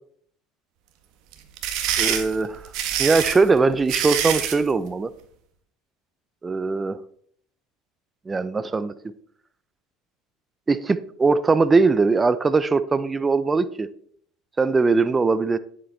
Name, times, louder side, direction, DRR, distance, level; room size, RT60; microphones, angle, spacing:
sound 1, 1.3-4.6, right 9 dB, 70° right, 1.7 m, -25 dB
voice 1, 2.0-2.6 3.0-5.1 6.4-7.0 8.3-8.9 10.7-13.9 14.6-15.6, right 4 dB, 20° right, 0.7 m, -20 dB
10.5 x 7.7 x 4.2 m
supercardioid pair, 90°, 0 cm